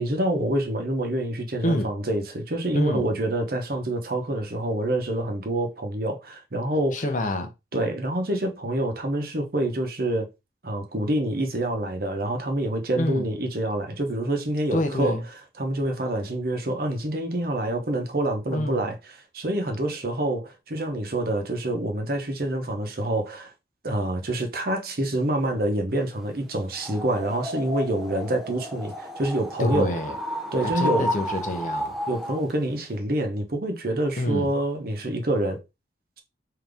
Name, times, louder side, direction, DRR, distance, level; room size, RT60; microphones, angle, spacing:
voice 1, 0.0-7.0 7.7-10.3 10.6-15.2 15.6-19.0 19.3-23.5 23.8-29.9 30.5-31.1 32.1-35.6, right 1 dB, 55° right, 0.9 m, -27 dB
voice 2, 2.7-3.1 6.9-7.5 13.0-13.3 14.7-15.2 18.5-18.8 29.6-30.2 30.6-32.0 34.2-34.5, left 1 dB, 45° left, 0.7 m, -27 dB
sound 1, 26.7-32.5, equal, ahead, 0.5 m, -32 dB
3.8 x 2.8 x 3.4 m
head